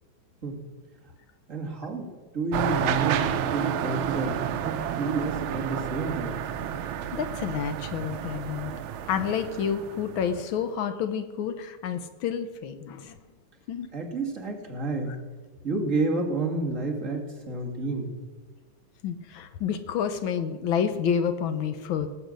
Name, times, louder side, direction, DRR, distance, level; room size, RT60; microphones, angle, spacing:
voice 1, 1.5-2.1 2.3-6.5 13.9-15.2 15.6-18.1, right 3 dB, 40° right, 0 dB, 2.1 m, -30 dB
sound 1, 2.5-10.4, right 9 dB, 80° right, 1.5 m, -30 dB
voice 2, 7.1-8.7 9.1-13.2 13.7-13.9 19.0-22.1, left 7 dB, 75° left, 10 dB, 1.5 m, -29 dB
18.0 x 7.2 x 6.3 m, 1.4 s
omnidirectional pair, 2.3 m